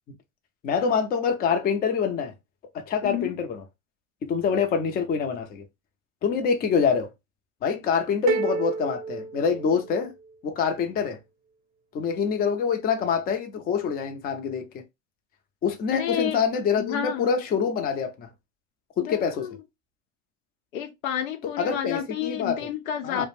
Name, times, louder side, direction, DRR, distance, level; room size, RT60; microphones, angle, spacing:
voice 1, 0.6-2.3 2.7-3.6 4.2-5.6 6.2-7.1 7.6-10.1 10.4-11.2 11.9-14.8 15.6-18.3 19.0-19.5 21.6-22.6 23.0-23.3, left 6 dB, 25° left, 0.5 m, -25 dB
voice 2, 3.0-3.4 15.9-16.4 16.8-17.3 19.0-19.6 20.7-23.3, left 9 dB, 80° left, 0.7 m, -30 dB
sound 1, 8.3-10.3, right 4 dB, 50° right, 0.7 m, -30 dB
2.4 x 2.1 x 3.1 m
hypercardioid pair, 100°, 40 cm